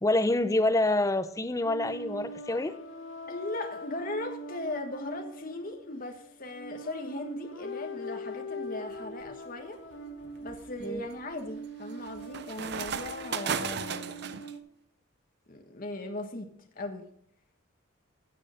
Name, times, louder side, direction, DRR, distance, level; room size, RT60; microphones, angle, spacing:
voice 1, 0.0-2.7 10.8-11.0, left 2 dB, 15° left, 0.6 m, -27 dB
sound 1, 1.6-14.6, equal, 65° left, 1.7 m, -42 dB
voice 2, 3.3-9.8 10.4-14.4 15.5-17.1, left 2 dB, 40° left, 1.4 m, -38 dB
sound 2, 9.0-9.3 9.9-14.5, right 7 dB, 50° right, 0.6 m, -36 dB
16.0 x 6.5 x 5.1 m
head